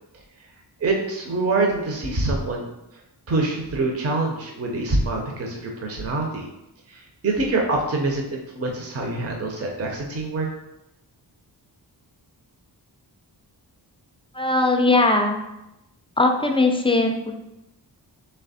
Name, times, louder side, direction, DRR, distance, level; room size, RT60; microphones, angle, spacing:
voice 1, 0.8-2.7 3.3-6.5 6.9-10.5, right 2 dB, 35° right, 1 dB, 0.7 m, -25 dB
voice 2, 14.3-15.4 16.2-17.3, left 2 dB, 15° left, 4 dB, 0.4 m, -19 dB
3.4 x 3.2 x 4.1 m, 0.89 s
wide cardioid pair, 105°, 42 cm